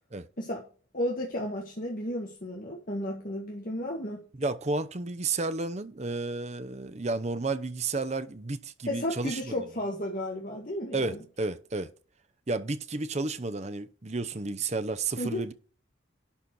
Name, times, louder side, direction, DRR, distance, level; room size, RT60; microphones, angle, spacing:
voice 1, 0.9-4.2 8.8-11.2 15.2-15.4, left 1 dB, 45° left, 1.7 m, -33 dB
voice 2, 4.4-9.6 10.9-11.9 12.5-15.5, right 3 dB, 35° right, 0.7 m, -32 dB
11.0 x 4.3 x 6.2 m
head